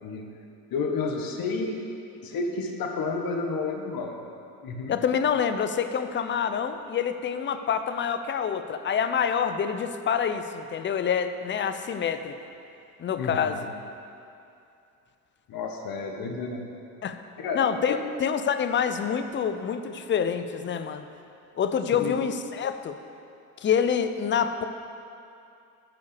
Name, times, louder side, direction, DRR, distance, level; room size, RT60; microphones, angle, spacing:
voice 1, 0.0-0.3 0.7-1.8 2.2-4.2 4.6-5.0 13.2-13.6 15.5-16.6 17.4-18.1 22.0-22.2, left 4 dB, 50° left, 2 dB, 1.4 m, -31 dB
voice 2, 4.9-12.3 13.0-13.6 17.0-17.2 17.5-21.1 21.6-23.0 23.6-24.6, left 7 dB, 25° left, 9 dB, 0.6 m, -27 dB
9.4 x 5.5 x 6.8 m, 2.6 s
hypercardioid pair, 70°, 44 cm